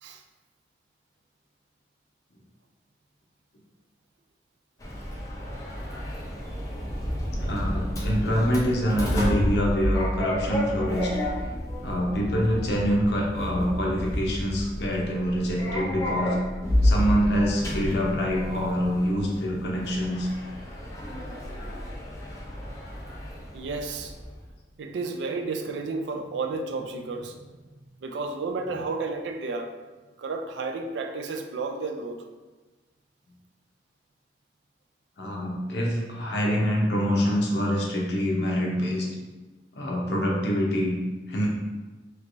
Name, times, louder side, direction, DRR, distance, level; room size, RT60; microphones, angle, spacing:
Sliding door, 4.8-24.4, equal, 20° left, 0.5 m, -30 dB
voice 1, 7.4-11.2 11.8-16.3 16.8-20.3 35.2-39.1 39.7-41.0 41.3-41.5, equal, 70° left, -2 dB, 0.7 m, -25 dB
voice 2, 23.5-24.1 24.8-27.6 28.0-29.7 30.2-32.3 35.3-35.4, right 3 dB, 85° right, 5 dB, 0.4 m, -32 dB
3.2 x 3.1 x 2.5 m, 1.2 s
head